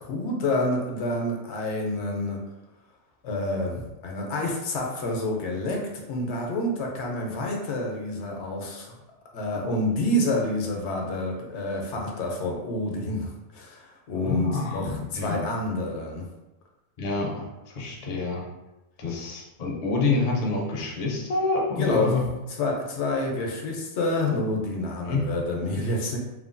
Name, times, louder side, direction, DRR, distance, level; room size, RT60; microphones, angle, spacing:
voice 1, 0.0-2.4 3.2-9.0 9.3-16.3 21.8-22.2 22.6-26.2, left 1 dB, 75° left, 0 dB, 0.9 m, -28 dB
voice 2, 14.2-15.4 17.0-18.4 19.0-22.2 25.0-25.2, left 3 dB, 50° left, -1 dB, 0.6 m, -27 dB
3.0 x 2.2 x 2.5 m, 0.99 s
omnidirectional pair, 1.2 m